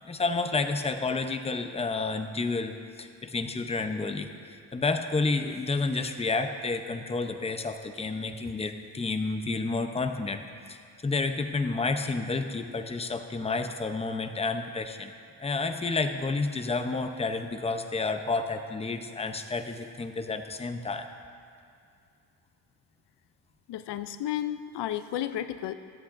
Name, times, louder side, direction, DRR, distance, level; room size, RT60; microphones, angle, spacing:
voice 1, 0.0-10.4 10.7-15.1 15.4-21.1, left 3 dB, 15° left, 7 dB, 0.7 m, -30 dB
voice 2, 23.7-25.7, left 11 dB, 80° left, 11 dB, 0.6 m, -32 dB
25.0 x 8.5 x 2.6 m, 2.4 s
cardioid pair, 90°, 41 cm